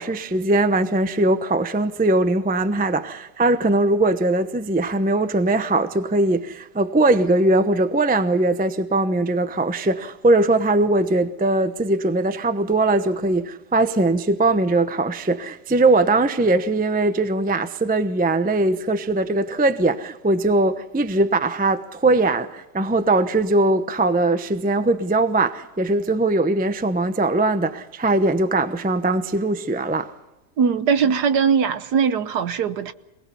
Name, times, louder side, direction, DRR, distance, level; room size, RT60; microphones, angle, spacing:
voice 1, 0.0-30.1, right 2 dB, 10° right, 0.5 m, -20 dB
voice 2, 30.6-32.9, right 6 dB, 70° right, 1.5 m, -20 dB
27.5 x 19.5 x 5.6 m
omnidirectional pair, 1.9 m